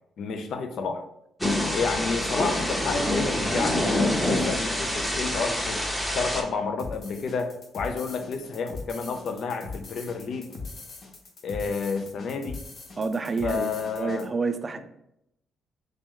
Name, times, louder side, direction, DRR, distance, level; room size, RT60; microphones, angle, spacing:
voice 1, 0.2-1.0 1.7-5.9 6.1-10.6 11.4-12.6 13.4-14.3, left 5 dB, 65° left, 7 dB, 0.5 m, -30 dB
Thunder / Rain, 1.4-6.4, left 1 dB, 5° left, 0.8 m, -26 dB
sound 1, 6.8-14.3, left 3 dB, 50° left, 0.9 m, -41 dB
voice 2, 13.0-14.8, right 4 dB, 35° right, 9 dB, 0.4 m, -29 dB
3.2 x 2.9 x 3.6 m, 0.80 s
cardioid pair, 90°, 0 cm